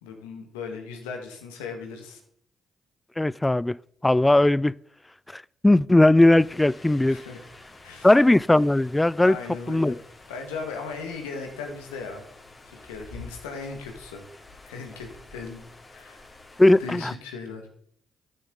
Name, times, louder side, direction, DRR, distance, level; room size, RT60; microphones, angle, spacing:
voice 1, 0.0-2.2 7.0-7.4 7.8-8.1 9.2-10.0 10.3-12.2 12.7-14.2 14.6-15.6 15.9-16.2 16.8-17.6, left 4 dB, 85° left, 1.7 m, -37 dB
voice 2, 3.2-3.8 4.0-4.7 5.3-7.2 8.0-9.4 9.7-10.0 16.6-17.1, left 1 dB, 15° left, 0.3 m, -18 dB
sound 1, 6.4-17.2, left 2 dB, 30° left, 2.8 m, -49 dB
10.0 x 10.0 x 3.9 m
hypercardioid pair, 50°, 0 cm